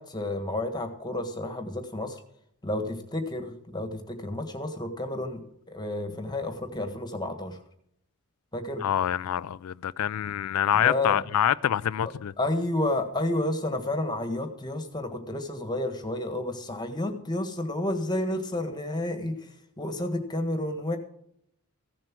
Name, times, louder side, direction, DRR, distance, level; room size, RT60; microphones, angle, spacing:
voice 1, 0.0-2.2 2.6-5.4 5.7-7.6 8.5-8.8 10.7-11.2 12.4-21.0, left 1 dB, 20° left, 1.5 m, -31 dB
voice 2, 8.8-12.3, left 10 dB, 85° left, 0.4 m, -26 dB
15.5 x 7.5 x 6.2 m
head